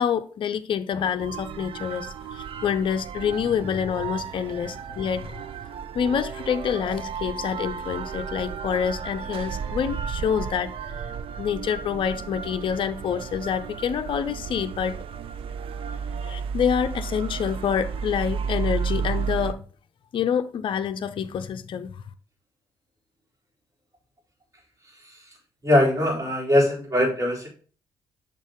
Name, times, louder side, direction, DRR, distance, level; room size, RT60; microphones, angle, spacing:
voice 1, 0.0-5.4 5.9-11.0 11.4-15.0 16.2-19.6 20.1-22.0, left 8 dB, 50° left, 0.5 m, -27 dB
sound 1, 1.2-19.5, right 6 dB, 55° right, 0.5 m, -33 dB
voice 2, 25.6-27.5, left 1 dB, 25° right, 3.7 m, -21 dB
6.3 x 3.7 x 5.0 m
hypercardioid pair, 40°, 11 cm